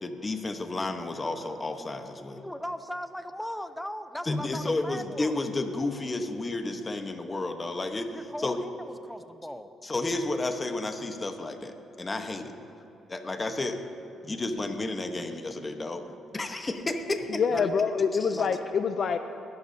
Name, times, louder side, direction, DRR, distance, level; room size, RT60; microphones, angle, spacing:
voice 1, 0.0-2.4 4.2-8.2 8.4-8.6 9.8-12.5 13.1-13.8 14.2-16.0 16.3-17.4, left 2 dB, 25° left, 6 dB, 1.1 m, -31 dB
voice 2, 2.4-5.4 8.1-9.7 17.5-17.7 18.3-18.5, equal, 5° left, 10 dB, 0.6 m, -38 dB
voice 3, 17.3-19.2, left 6 dB, 55° left, 8 dB, 0.5 m, -26 dB
20.5 x 11.5 x 2.8 m, 3.0 s
cardioid pair, 90°, 0 cm